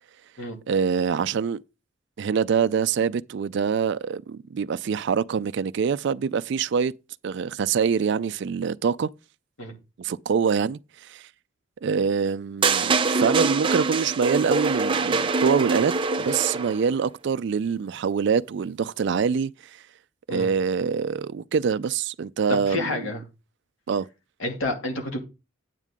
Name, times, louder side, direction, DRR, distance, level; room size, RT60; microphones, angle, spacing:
voice 1, 0.7-1.6 2.2-6.9 7.2-9.1 10.0-11.3 11.8-15.9 16.2-19.8 20.3-22.9 23.9-24.1, right 6 dB, 60° right, 0.4 m, -25 dB
sound 1, 12.6-16.9, right 4 dB, 25° right, 0.7 m, -24 dB
voice 2, 22.5-23.2 24.4-25.2, left 2 dB, 90° left, 2.5 m, -29 dB
9.2 x 8.1 x 3.6 m
head